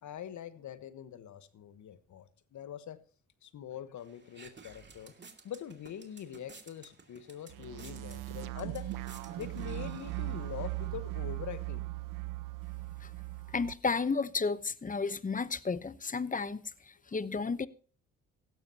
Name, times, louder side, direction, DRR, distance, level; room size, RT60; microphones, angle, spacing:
voice 1, 0.0-3.0 3.4-5.2 5.4-8.9 9.3-11.9 17.1-17.2, left 10 dB, 65° left, 1.3 m, -44 dB
sound 1, 4.0-10.9, right 4 dB, 35° right, 2.4 m, -55 dB
sound 2, 7.5-13.7, right 18 dB, 85° right, 0.9 m, -39 dB
voice 2, 13.5-17.7, left 4 dB, 25° left, 0.9 m, -33 dB
16.5 x 12.5 x 2.9 m
supercardioid pair, 65°, 31 cm